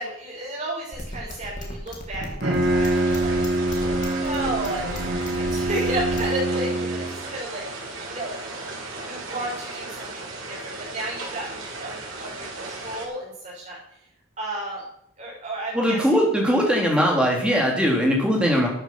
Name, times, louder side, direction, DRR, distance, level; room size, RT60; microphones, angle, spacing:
voice 1, 0.0-3.8 4.2-13.8 14.4-14.8 15.2-16.0, right 1 dB, 35° right, -4 dB, 5.6 m, -33 dB
sound 1, 0.9-6.3, equal, 40° left, 2.9 m, -35 dB
Bowed string instrument, 2.2-7.3, right 2 dB, 55° right, 2.3 m, -25 dB
sound 2, 2.5-13.1, right 2 dB, 90° right, 3.8 m, -36 dB
voice 2, 15.7-18.7, equal, 5° right, -1 dB, 3.3 m, -20 dB
12.5 x 9.3 x 6.0 m, 0.71 s
head